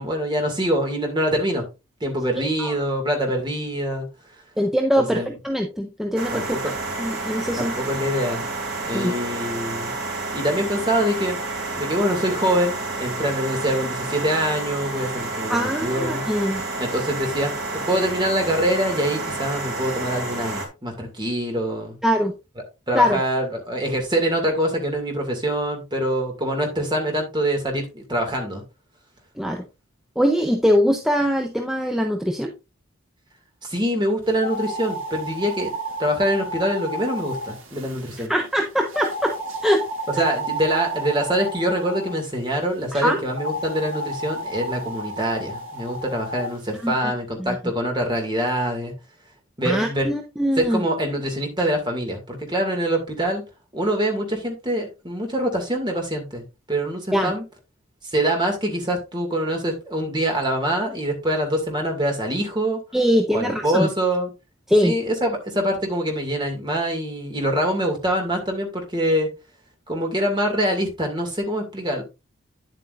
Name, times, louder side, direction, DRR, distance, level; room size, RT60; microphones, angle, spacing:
voice 1, 0.0-1.6 2.0-4.1 5.0-5.3 6.3-6.6 7.6-8.4 8.8-9.9 10.3-11.4 11.8-16.3 16.8-17.5 17.9-22.0 22.9-28.6 33.6-35.7 36.0-38.3 40.1-48.9 49.6-50.1 50.6-53.4 53.7-56.4 56.7-57.4 58.0-62.8 63.3-64.3 64.8-69.3 69.9-72.0, right 1 dB, 20° right, 2.3 m, -24 dB
voice 2, 4.6-6.7 7.0-7.7 8.9-9.1 15.5-16.6 22.0-22.3 22.9-23.2 29.4-29.6 30.2-32.5 38.3-39.3 39.6-39.8 42.9-43.2 46.8-46.9 47.4-47.6 49.6-50.8 57.1-57.3 62.9-63.9 64.7-64.9, equal, ahead, 0.7 m, -22 dB
sound 1, 6.2-20.7, right 2 dB, 50° right, 3.1 m, -30 dB
sound 2, 34.4-38.3 38.9-42.2 43.3-46.5, right 1 dB, 65° right, 2.2 m, -32 dB
9.7 x 7.9 x 2.5 m
head